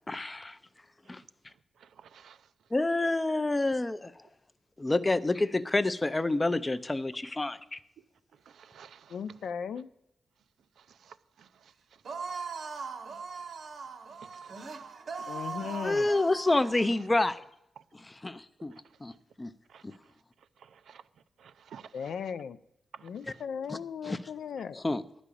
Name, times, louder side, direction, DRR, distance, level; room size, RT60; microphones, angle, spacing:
voice 1, 0.1-0.6 1.1-1.2 2.7-4.1 4.8-7.8 15.8-17.4 17.9-18.7 19.0-19.1 19.4-19.5 19.8-19.9 23.7-23.8 24.0-24.2 24.7-25.0, left 2 dB, 15° left, 0.4 m, -28 dB
voice 2, 1.8-2.5 8.5-9.2 10.8-12.0 14.2-14.9 15.2-15.3 18.7-18.8 19.7-20.1 20.6-21.0 21.4-22.1 22.9-23.4, right 7 dB, 80° right, 0.5 m, -54 dB
voice 3, 9.1-9.9 15.3-16.1 21.9-22.6 23.0-24.8, left 7 dB, 75° left, 0.4 m, -37 dB
sound 1, 12.0-16.9, right 5 dB, 60° right, 0.9 m, -40 dB
11.0 x 5.0 x 8.4 m
wide cardioid pair, 130°, 0 cm